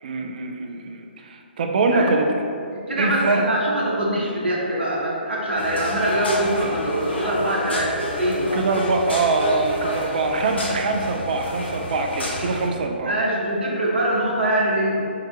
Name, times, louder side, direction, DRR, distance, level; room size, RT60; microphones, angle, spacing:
voice 1, 0.0-2.3 3.0-3.5 8.5-13.1, right 3 dB, 50° right, 3 dB, 0.4 m, -23 dB
voice 2, 2.7-8.6 13.1-15.1, right 1 dB, 70° right, -4 dB, 1.0 m, -23 dB
sound 1, 5.6-12.7, left 1 dB, 75° left, 0.9 m, -30 dB
4.7 x 2.8 x 3.3 m, 2.6 s
figure-of-eight pair, 130°, 6 cm